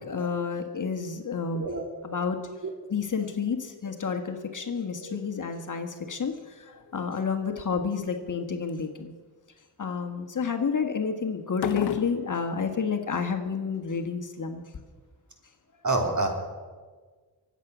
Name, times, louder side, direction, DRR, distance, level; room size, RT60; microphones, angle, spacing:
voice 1, 0.0-1.6 2.0-2.4 2.9-6.4 6.9-9.1 9.8-14.6, left 5 dB, 45° left, 5 dB, 1.6 m, -30 dB
voice 2, 1.5-1.9 2.6-2.7 5.0-5.2 15.8-16.3, right 2 dB, 40° right, 3 dB, 3.1 m, -27 dB
sound 1, 6.1-6.4 6.8-7.3 7.8-8.3 8.7-8.9 11.5-12.4, left 8 dB, 60° left, 0.9 m, -33 dB
23.5 x 8.4 x 6.1 m, 1.5 s
cardioid pair, 65°, 43 cm